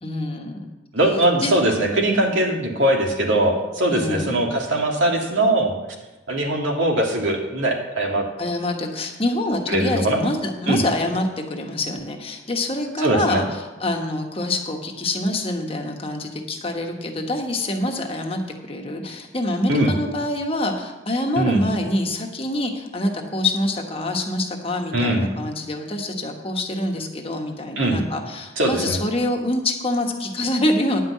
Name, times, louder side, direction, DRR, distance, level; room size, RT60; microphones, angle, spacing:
voice 1, 0.0-0.6 1.4-1.5 3.9-4.4 8.4-31.0, left 1 dB, 30° left, 2 dB, 1.2 m, -25 dB
voice 2, 0.9-5.7 6.3-8.3 9.7-10.2 10.7-10.8 13.0-13.4 19.7-19.9 21.4-21.6 24.9-25.2 27.8-28.0 28.6-29.0, right 1 dB, 85° right, 1 dB, 1.9 m, -21 dB
10.5 x 5.5 x 8.3 m, 1.1 s
head